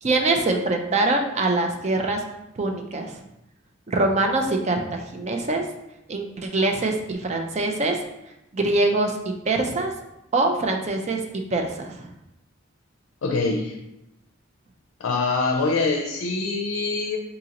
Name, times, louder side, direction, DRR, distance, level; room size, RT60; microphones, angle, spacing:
voice 1, 0.0-2.2 2.6-3.2 3.9-5.6 6.1-8.0 8.5-9.2 9.5-9.9 10.3-11.2 11.5-12.1, right 2 dB, 35° right, 3 dB, 0.4 m, -23 dB
voice 2, 13.2-13.7 15.0-17.2, left 3 dB, 70° left, 2 dB, 0.5 m, -24 dB
3.9 x 3.8 x 2.8 m, 0.90 s
head